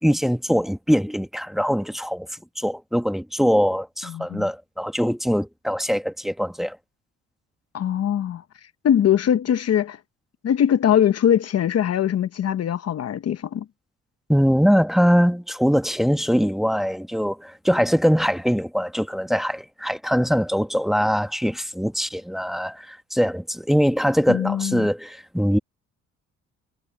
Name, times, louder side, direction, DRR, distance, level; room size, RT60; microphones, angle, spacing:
voice 1, 0.0-2.3 2.6-6.8 14.3-25.6, equal, ahead, 1.4 m, -22 dB
voice 2, 4.1-4.5 7.7-8.4 8.8-10.0 10.4-13.6 24.3-24.9, left 9 dB, 55° left, 0.9 m, -21 dB
cardioid pair, 90°, 30 cm